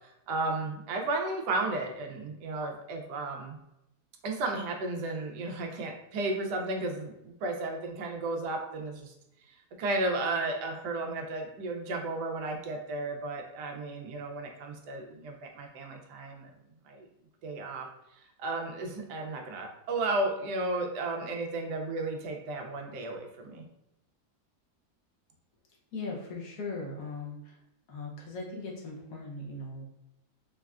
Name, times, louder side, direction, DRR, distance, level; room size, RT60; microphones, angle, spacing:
voice 1, 0.0-3.6 4.2-9.1 9.5-16.5 16.8-17.1 17.4-17.9 18.1-23.6, right 2 dB, 90° right, 2 dB, 1.2 m, -34 dB
voice 2, 25.9-27.6 27.9-29.9, left 3 dB, 75° left, -1 dB, 1.3 m, -39 dB
4.0 x 2.2 x 2.3 m, 0.85 s
omnidirectional pair, 1.7 m